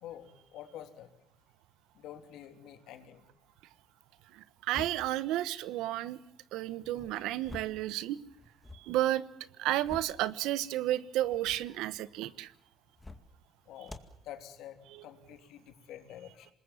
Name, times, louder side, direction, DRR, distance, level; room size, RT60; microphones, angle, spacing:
voice 1, 0.0-1.1 1.9-3.2 13.7-14.0 14.2-16.5, left 11 dB, 80° left, 7 dB, 3.0 m, -48 dB
voice 2, 4.3-6.2 6.5-8.2 8.8-9.2 9.6-12.5 14.9-15.0, right 14 dB, 85° right, 17 dB, 1.1 m, -32 dB
sound 1, 4.7-5.2 6.8-7.9 8.2-8.9 9.5-10.2 11.2-11.7 12.9-13.4 13.8-14.2, left 2 dB, 10° left, 2.1 m, -48 dB
26.5 x 21.0 x 7.2 m, 0.80 s
cardioid pair, 120°, 0 cm